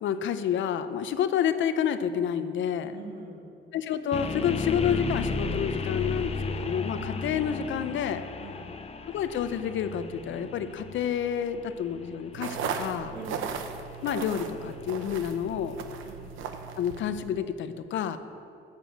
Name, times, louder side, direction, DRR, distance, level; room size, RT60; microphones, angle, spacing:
voice 1, 0.0-3.0 3.7-8.2 9.1-13.1 14.0-15.8 16.8-18.2, left 8 dB, 75° left, 11 dB, 0.7 m, -29 dB
voice 2, 2.9-3.7 8.4-8.8 13.1-13.4 16.0-16.3, right 3 dB, 60° right, 0 dB, 2.1 m, -44 dB
sound 1, 4.1-16.1, left 4 dB, 30° left, 0.7 m, -35 dB
sound 2, 12.3-17.4, right 6 dB, 85° right, 0.8 m, -37 dB
8.3 x 7.1 x 7.7 m, 2.6 s
cardioid pair, 90°, 20 cm